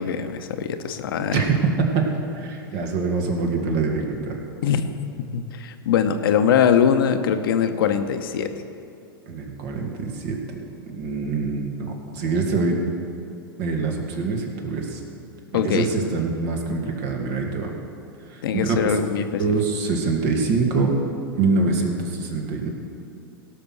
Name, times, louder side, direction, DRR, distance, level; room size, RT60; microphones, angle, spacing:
voice 1, 0.0-1.4 4.6-4.8 5.3-8.5 15.5-15.9 18.4-19.5, left 7 dB, 70° left, 8 dB, 0.9 m, -22 dB
voice 2, 2.3-4.4 4.7-4.8 9.3-10.4 10.8-12.8 13.6-15.0 15.5-17.7 18.3-19.0 19.4-20.9 21.4-22.7, right 4 dB, 50° right, 2 dB, 2.1 m, -24 dB
17.0 x 6.0 x 6.2 m, 2.7 s
hypercardioid pair, 105°, 12 cm